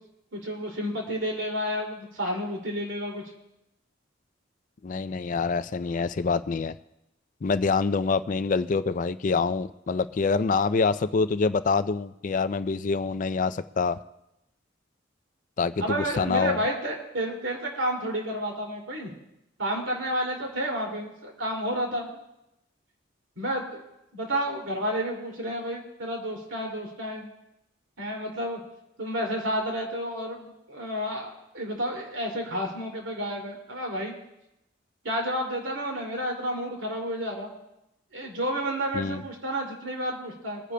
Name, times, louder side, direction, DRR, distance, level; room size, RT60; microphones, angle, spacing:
voice 1, 0.3-3.2 15.8-19.1 19.6-22.2 23.4-23.8 24.1-27.3 28.0-28.6 29.0-34.1 35.0-37.5 38.1-40.7, equal, 90° right, 0 dB, 2.6 m, -31 dB
voice 2, 4.8-6.7 7.4-14.0 15.6-16.6 38.9-39.2, left 4 dB, 40° left, 12 dB, 0.4 m, -26 dB
23.5 x 9.9 x 2.2 m, 0.89 s
head